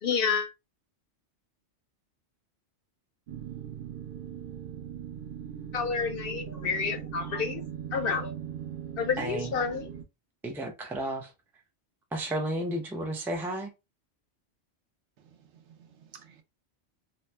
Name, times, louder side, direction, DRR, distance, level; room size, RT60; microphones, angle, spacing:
voice 1, 0.0-0.5 5.7-7.6 7.9-8.3 9.0-9.9, left 6 dB, 60° left, 0.7 m, -29 dB
sound 1, 3.3-10.0, right 9 dB, 60° right, 0.7 m, -40 dB
voice 2, 9.2-9.5 10.4-11.3 12.1-13.7, right 1 dB, 5° right, 0.3 m, -32 dB
voice 3, 15.2-16.4, right 7 dB, 75° right, 0.9 m, -55 dB
2.9 x 2.1 x 3.1 m
omnidirectional pair, 1.2 m